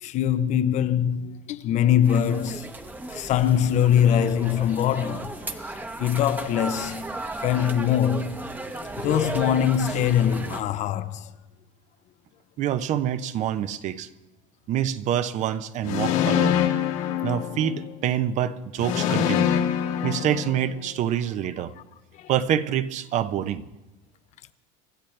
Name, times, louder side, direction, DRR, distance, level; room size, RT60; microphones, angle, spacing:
voice 1, 0.0-2.7 3.1-7.2 7.4-8.5 9.0-11.3 20.0-20.1 22.1-22.3, left 9 dB, 45° left, 0.7 m, -23 dB
sound 1, 2.0-10.6, right 2 dB, 10° right, 0.9 m, -35 dB
voice 2, 12.6-14.1 14.7-16.6 17.2-19.5 20.0-21.7 22.3-23.7, right 10 dB, 45° right, 0.7 m, -26 dB
sound 2, 15.8-18.0 18.8-21.0, left 9 dB, 80° left, 2.1 m, -25 dB
25.5 x 13.0 x 3.3 m
supercardioid pair, 120°, 17 cm